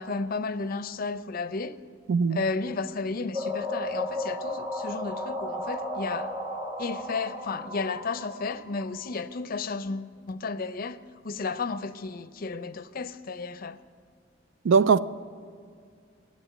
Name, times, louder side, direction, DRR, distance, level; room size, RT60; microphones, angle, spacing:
voice 1, 0.0-1.8 2.3-6.3 6.8-11.0 11.2-13.8, left 4 dB, 50° left, 0.5 m, -33 dB
sound 1, 3.3-9.1, left 1 dB, 25° right, 1.2 m, -34 dB
voice 2, 14.6-15.0, right 5 dB, 75° right, 0.4 m, -20 dB
11.0 x 8.1 x 9.2 m
head